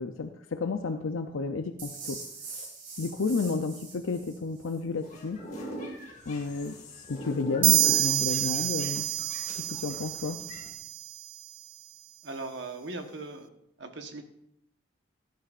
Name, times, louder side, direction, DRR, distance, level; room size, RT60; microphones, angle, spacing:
voice 1, 0.0-2.2 2.5-2.7 3.0-5.4 6.3-9.1 9.6-10.4, left 4 dB, 75° left, 6 dB, 0.5 m, -32 dB
sound 1, 1.8-4.8, right 4 dB, 40° right, 2.7 m, -43 dB
sound 2, 5.0-10.7, equal, 35° left, 1.9 m, -42 dB
sound 3, 7.6-11.2, right 15 dB, 80° right, 0.3 m, -27 dB
voice 2, 12.2-13.5 13.8-14.2, right 2 dB, 60° right, 5 dB, 1.2 m, -39 dB
16.5 x 10.0 x 2.5 m, 0.74 s
head